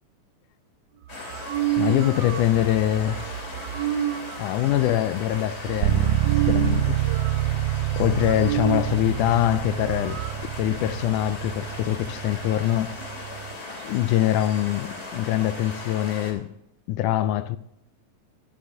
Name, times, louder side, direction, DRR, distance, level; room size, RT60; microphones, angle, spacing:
sound 1, 1.0-8.9 9.3-9.4 9.6-10.3, right 11 dB, 70° right, 1.5 m, -31 dB
sound 2, 1.1-16.3, left 2 dB, 20° left, 2.9 m, -38 dB
voice 1, 1.8-4.0 4.4-6.2 6.5-7.0 8.0-12.9 13.8-16.5 16.9-17.6, left 13 dB, 80° left, 2.0 m, -24 dB
sound 3, 5.8-13.6, right 16 dB, 90° right, 2.2 m, -27 dB
11.5 x 11.0 x 3.6 m
omnidirectional pair, 3.7 m